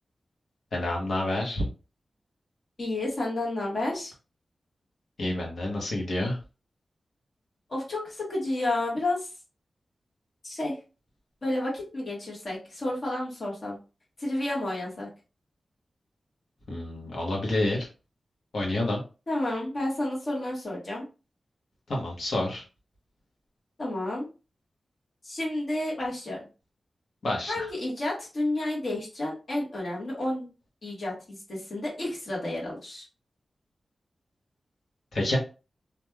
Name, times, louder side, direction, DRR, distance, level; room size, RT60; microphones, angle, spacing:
voice 1, 0.7-1.6 5.2-6.4 16.7-17.9 18.5-19.0 21.9-22.6 27.2-27.6 35.1-35.4, left 1 dB, 75° left, -1 dB, 1.1 m, -28 dB
voice 2, 2.8-4.1 7.7-9.3 10.4-10.8 11.4-13.8 14.2-15.1 19.3-21.0 23.8-24.3 25.2-26.4 27.5-30.5 30.8-33.0, left 1 dB, 50° left, -3 dB, 1.4 m, -31 dB
3.1 x 2.5 x 2.3 m, 0.32 s
wide cardioid pair, 120°, 0 cm